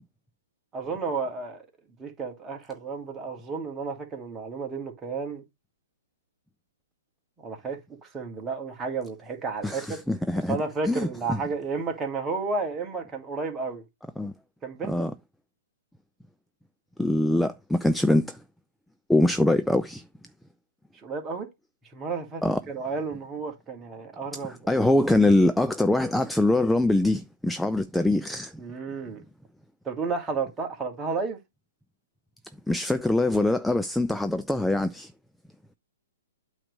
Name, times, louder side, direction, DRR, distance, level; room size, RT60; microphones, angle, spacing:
voice 1, 0.7-1.6 2.0-5.4 7.4-10.0 10.5-13.8 14.6-15.1 21.0-21.5 21.9-24.5 28.6-29.2 29.8-31.4, right 4 dB, 15° right, 2.0 m, -32 dB
voice 2, 9.6-10.6 10.9-11.4 14.2-14.3 14.9-15.1 17.0-18.4 19.1-20.0 22.4-22.6 24.4-28.6 32.7-35.1, left 1 dB, ahead, 0.4 m, -23 dB
8.7 x 3.2 x 6.2 m
hypercardioid pair, 125°, 0 cm